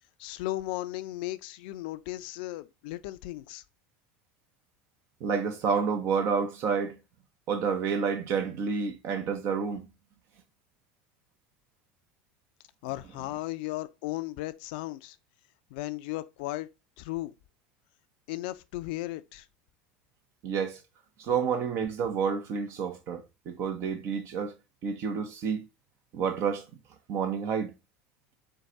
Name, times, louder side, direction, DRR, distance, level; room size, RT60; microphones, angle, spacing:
voice 1, 0.2-3.6 12.8-15.2 15.7-16.7 17.0-17.3 18.3-19.5, left 17 dB, 70° left, 0.4 m, -36 dB
voice 2, 5.2-7.0 7.5-9.9 20.4-20.8 21.2-24.5 24.8-25.6 26.1-26.7 27.1-27.7, right 6 dB, 55° right, 0.9 m, -29 dB
4.6 x 2.3 x 3.8 m
hypercardioid pair, 85°, 5 cm